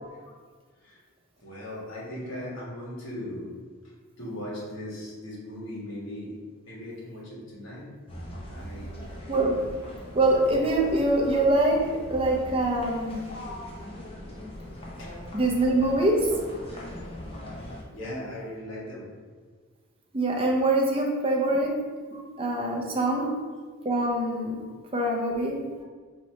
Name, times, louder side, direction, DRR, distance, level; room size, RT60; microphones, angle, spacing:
voice 1, 1.4-3.4 4.2-6.3 6.7-7.8 8.5-8.9 13.3-13.6 15.0-15.1 17.9-19.1 20.9-21.0 22.1-22.2 23.2-23.3 24.6-24.7, left 1 dB, 65° left, -6 dB, 1.4 m, -38 dB
sound 1, 8.1-17.8, left 1 dB, 25° left, 0.6 m, -41 dB
voice 2, 10.1-11.8 12.1-13.2 15.3-16.3 20.1-21.7 22.4-23.3 23.8-24.6 24.9-25.6, right 1 dB, 25° right, -1 dB, 0.6 m, -24 dB
4.1 x 2.9 x 3.1 m, 1.5 s
head